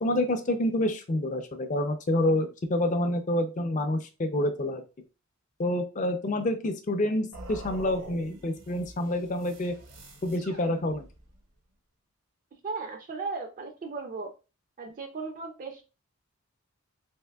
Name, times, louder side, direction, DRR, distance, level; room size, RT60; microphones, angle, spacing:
voice 1, 0.0-4.8 5.6-9.7 10.2-11.1, left 1 dB, 35° left, 7 dB, 0.4 m, -28 dB
sound 1, 7.3-11.4, right 2 dB, 75° right, 0.8 m, -46 dB
voice 2, 12.6-14.3 14.8-15.8, right 4 dB, 40° right, 5 dB, 0.3 m, -36 dB
3.4 x 2.6 x 2.2 m, 0.30 s
head